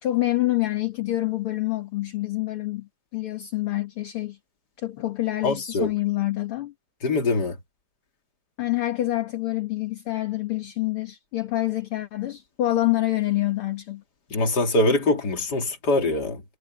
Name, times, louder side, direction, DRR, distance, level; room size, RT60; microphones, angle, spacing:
voice 1, 0.0-4.4 4.8-6.7 8.6-14.0, left 16 dB, 55° left, 1.8 m, -26 dB
voice 2, 5.4-5.9 7.0-7.6 14.3-16.4, left 2 dB, 30° left, 2.8 m, -23 dB
omnidirectional pair, 3.8 m